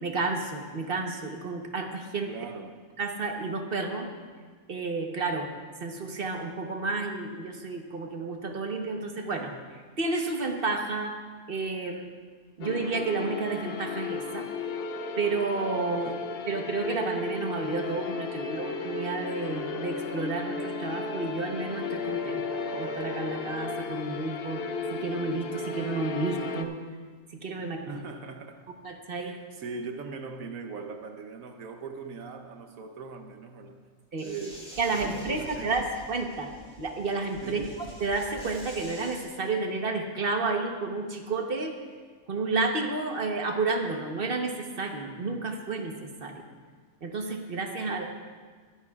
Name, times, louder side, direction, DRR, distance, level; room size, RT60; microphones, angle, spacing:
voice 1, 0.0-2.3 3.0-4.1 4.7-5.5 5.8-9.5 10.0-11.2 11.5-12.0 12.6-14.5 15.2-16.1 16.5-22.4 22.7-24.6 24.9-26.8 27.4-27.8 28.8-29.4 34.1-34.3 34.8-36.5 36.8-37.6 38.0-41.7 42.3-46.3 47.0-48.0, right 3 dB, 45° right, 3 dB, 1.2 m, -31 dB
voice 2, 2.3-2.8 16.0-16.2 27.6-28.7 29.2-33.8 34.2-35.9 37.4-37.8 47.9-48.1, right 4 dB, 75° right, 5 dB, 1.3 m, -40 dB
sound 1, 12.6-26.6, left 4 dB, 55° left, 0.8 m, -34 dB
sound 2, 34.2-39.2, equal, 5° left, 2.1 m, -46 dB
21.5 x 10.5 x 2.4 m, 1.5 s
omnidirectional pair, 1.5 m